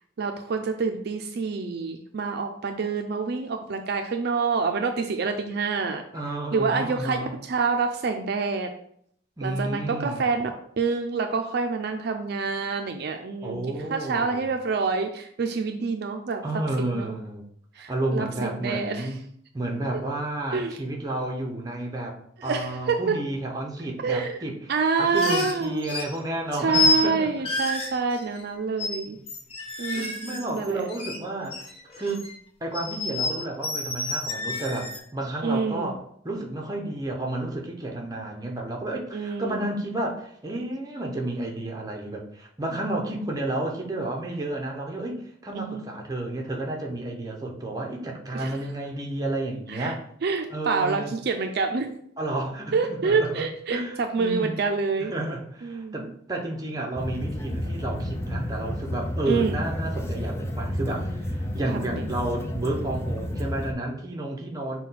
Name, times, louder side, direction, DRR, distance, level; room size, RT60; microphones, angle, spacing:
voice 1, 0.2-6.0 6.5-8.7 9.4-10.5 10.8-13.6 13.9-16.4 16.8-17.1 17.8-19.1 20.5-20.7 22.4-23.2 24.0-24.3 24.7-25.9 26.6-29.2 29.8-30.9 35.4-35.9 39.1-39.6 45.5-45.9 48.3-48.6 49.7-49.9 50.2-51.9 52.7-55.1 55.6-56.1 59.3-59.6 61.7-62.0, right 4 dB, 60° right, 5 dB, 0.4 m, -27 dB
voice 2, 6.1-7.3 9.4-10.3 13.4-14.5 16.4-17.4 17.9-19.2 19.5-24.6 25.0-27.3 29.9-31.7 32.0-32.3 32.6-50.0 50.5-51.1 52.2-53.4 53.7-54.6 55.0-64.8, right 2 dB, 20° right, 0 dB, 0.7 m, -31 dB
sound 1, 25.1-26.2 26.7-27.1 27.4-28.5 28.8-29.0 29.3-31.2 31.5-32.4 32.7-35.0, left 3 dB, 35° left, 0.8 m, -29 dB
sound 2, 57.0-63.7, left 1 dB, 15° left, 0.4 m, -31 dB
5.7 x 2.2 x 4.1 m, 0.67 s
head